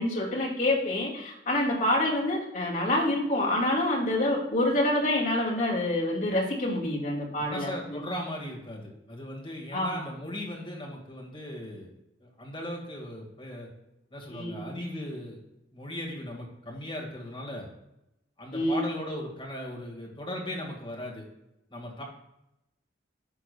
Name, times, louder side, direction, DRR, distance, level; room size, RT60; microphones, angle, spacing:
voice 1, 0.0-8.0 9.7-10.0 14.3-14.8 18.5-18.9, left 1 dB, 45° left, -4 dB, 2.3 m, -27 dB
voice 2, 7.4-11.9 12.2-13.7 14.1-15.4 15.7-17.7 18.4-21.2 21.7-22.0, equal, 30° left, -1 dB, 1.7 m, -38 dB
10.0 x 6.0 x 2.3 m, 0.87 s
head